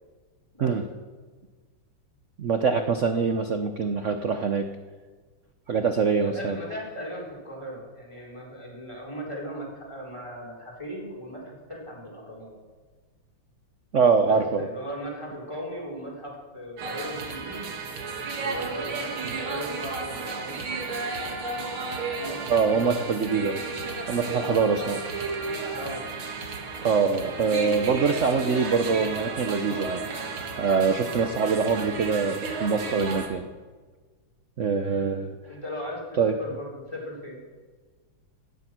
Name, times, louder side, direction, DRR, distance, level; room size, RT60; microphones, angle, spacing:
voice 1, 2.4-4.7 5.7-6.6 13.9-14.7 22.5-23.6 24.1-25.0 26.8-30.1 30.5-33.5 34.6-35.3 36.2-36.3, right 5 dB, 90° right, 7 dB, 0.6 m, -24 dB
voice 2, 6.2-12.5 14.3-17.7 18.3-21.1 22.2-22.9 25.7-26.0 30.8-31.3 34.9-35.1 35.5-37.4, equal, 10° left, -2 dB, 4.0 m, -38 dB
sound 1, 16.8-33.3, right 4 dB, 70° right, 2.6 m, -33 dB
17.0 x 12.5 x 6.1 m, 1.4 s
omnidirectional pair, 2.4 m